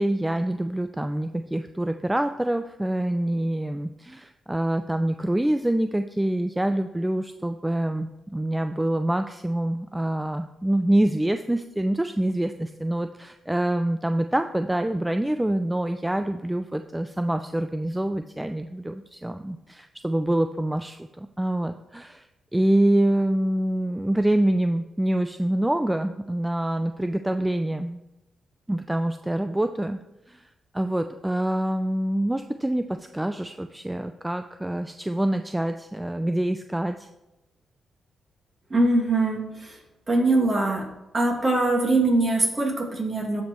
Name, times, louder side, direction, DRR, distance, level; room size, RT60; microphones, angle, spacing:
voice 1, 0.0-22.3 22.5-28.0 28.7-30.0 30.3-30.4 30.7-37.1, right 1 dB, 10° right, 8 dB, 0.4 m, -26 dB
voice 2, 38.7-39.8 40.1-40.9 41.1-43.4, right 2 dB, 35° right, -1 dB, 2.3 m, -22 dB
14.0 x 5.3 x 3.1 m, 0.95 s
cardioid pair, 80°, 0 cm